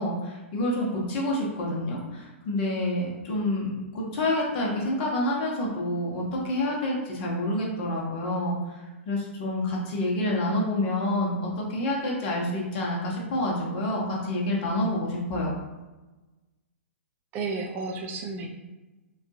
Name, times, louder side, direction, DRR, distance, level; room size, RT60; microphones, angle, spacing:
voice 1, 0.0-15.5, left 1 dB, 40° left, -3 dB, 0.9 m, -28 dB
voice 2, 17.3-18.5, right 3 dB, 25° right, 2 dB, 0.4 m, -32 dB
3.5 x 2.3 x 2.7 m, 1.1 s
figure-of-eight pair, 115°, 7 cm